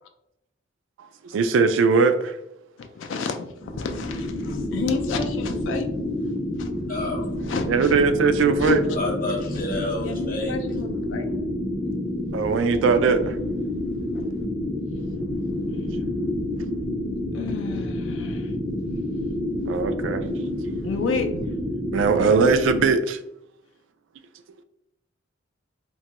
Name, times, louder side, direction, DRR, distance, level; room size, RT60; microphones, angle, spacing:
voice 1, 1.3-2.4 7.7-8.8 12.3-13.4 19.7-20.2 21.9-23.2, right 5 dB, 85° right, 10 dB, 0.3 m, -20 dB
voice 2, 2.8-5.9 6.6-6.7 7.4-7.9 8.6-8.8 10.0-11.3 14.1-14.3 16.6-16.7 17.3-18.5 20.8-21.5, left 5 dB, 85° left, 5 dB, 0.4 m, -30 dB
sound 1, 3.6-22.9, left 1 dB, 15° left, 0.4 m, -29 dB
voice 3, 6.8-7.5 8.9-10.6, left 2 dB, 50° left, 0 dB, 0.8 m, -30 dB
2.9 x 2.2 x 2.8 m, 0.82 s
head